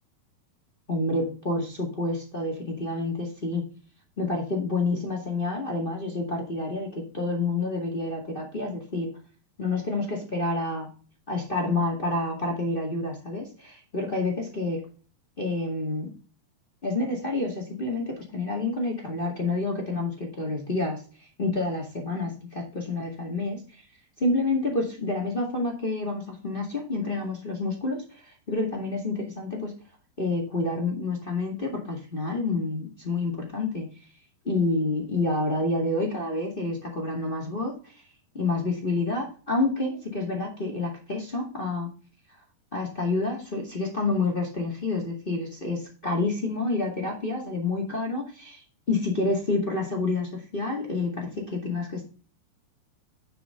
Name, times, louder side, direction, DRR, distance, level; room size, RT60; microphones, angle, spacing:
voice 1, 0.9-3.7 4.2-9.1 9.6-10.9 11.3-14.8 15.4-16.1 16.8-23.8 24.2-29.7 30.2-33.9 34.4-38.0 38.3-41.9 42.7-52.1, left 2 dB, 30° left, -1 dB, 0.9 m, -28 dB
10.0 x 6.1 x 3.7 m, 0.39 s
omnidirectional pair, 4.3 m